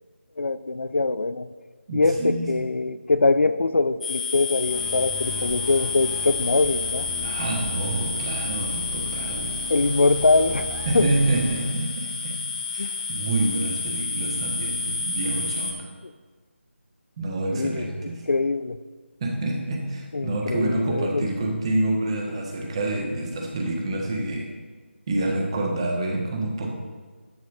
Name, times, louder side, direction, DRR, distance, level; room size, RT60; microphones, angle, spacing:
voice 1, 0.4-1.5 1.9-7.1 9.7-11.1 12.8-12.9 17.5-17.9 18.3-18.8 20.1-21.3, left 3 dB, 65° left, 13 dB, 0.4 m, -23 dB
voice 2, 1.9-2.5 7.2-9.5 10.9-12.4 12.7-15.8 17.2-18.2 19.2-24.5 25.1-26.7, right 2 dB, 25° right, 1 dB, 1.3 m, -27 dB
sound 1, 4.0-15.7, left 4 dB, 45° left, 1.7 m, -30 dB
sound 2, 4.7-11.7, right 1 dB, 5° right, 0.6 m, -38 dB
12.0 x 4.6 x 6.4 m, 1.4 s
figure-of-eight pair, 160°, 7 cm